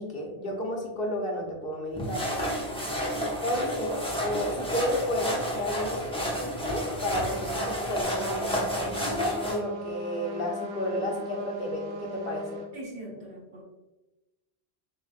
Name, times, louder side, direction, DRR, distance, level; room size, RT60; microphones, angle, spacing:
voice 1, 0.0-2.2 3.4-12.6, left 1 dB, 60° left, 0 dB, 1.1 m, -32 dB
sound 1, 2.0-9.6, equal, 5° left, 0.6 m, -31 dB
voice 2, 2.6-3.1 12.7-13.6, right 1 dB, 90° right, -4 dB, 1.7 m, -42 dB
Trumpet, 7.1-12.7, equal, 70° right, 0.8 m, -39 dB
6.7 x 2.3 x 2.4 m, 1.0 s
omnidirectional pair, 1.1 m